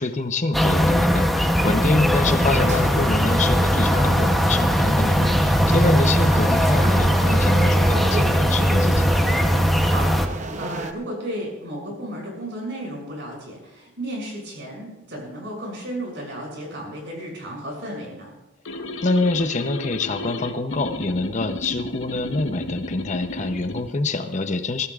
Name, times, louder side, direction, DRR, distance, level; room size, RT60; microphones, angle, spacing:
voice 1, 0.0-9.1 19.0-24.9, left 2 dB, 35° left, 8 dB, 0.7 m, -25 dB
sound 1, 0.5-10.3, equal, ahead, 0.8 m, -19 dB
sound 2, 2.2-10.9, right 2 dB, 35° right, 0.8 m, -33 dB
voice 2, 5.6-5.9 9.8-18.3, right 1 dB, 60° right, -1 dB, 6.5 m, -34 dB
sound 3, 18.7-23.9, left 1 dB, 70° left, 1.1 m, -33 dB
22.0 x 15.5 x 2.4 m, 0.98 s
head